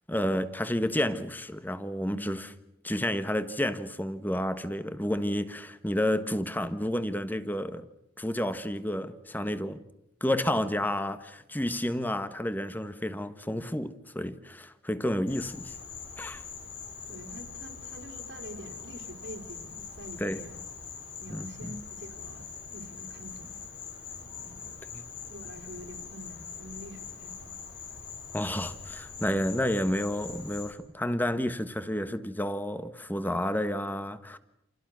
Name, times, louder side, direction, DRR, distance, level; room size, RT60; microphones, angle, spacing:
voice 1, 0.1-2.5 2.8-7.9 8.2-9.8 10.2-15.7 16.2-16.4 20.2-20.4 21.3-21.7 24.9-25.0 28.3-34.4, left 1 dB, 10° left, 1.3 m, -30 dB
voice 2, 2.1-2.5 17.1-20.6 21.2-23.6 24.4-24.7 25.3-27.6, right 1 dB, 75° right, 3.4 m, -46 dB
Insect, 15.3-30.7, left 6 dB, 75° left, 4.8 m, -43 dB
29.0 x 28.5 x 6.3 m
head